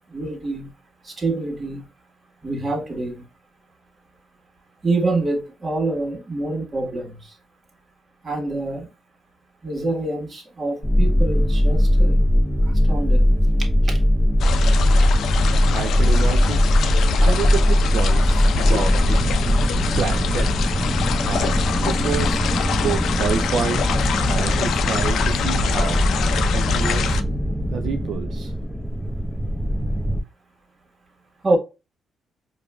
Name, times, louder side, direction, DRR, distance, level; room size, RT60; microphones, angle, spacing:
voice 1, 0.1-0.7 1.0-1.8 2.4-3.2 4.8-7.2 8.2-8.9 9.6-12.2 12.6-13.3 13.8-14.0 31.4-31.6, right 2 dB, 35° right, 1.6 m, -26 dB
sound 1, 10.8-30.2, equal, ahead, 0.8 m, -20 dB
sound 2, 14.4-27.2, left 6 dB, 70° left, 0.4 m, -25 dB
voice 2, 15.4-16.7 17.2-19.3 19.8-20.8 21.3-22.4 22.7-24.0 24.3-26.1 26.5-27.2 27.7-28.5, right 7 dB, 65° right, 0.4 m, -29 dB
4.7 x 2.6 x 2.2 m
cardioid pair, 90°, 0 cm